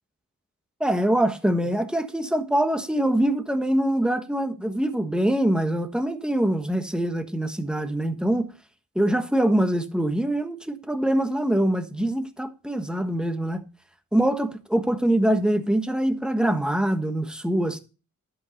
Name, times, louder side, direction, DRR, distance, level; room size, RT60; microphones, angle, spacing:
voice 1, 0.8-8.5 8.9-13.6 14.1-17.8, right 1 dB, ahead, 1.4 m, -24 dB
12.0 x 5.5 x 6.5 m
wide cardioid pair, 75°, 34 cm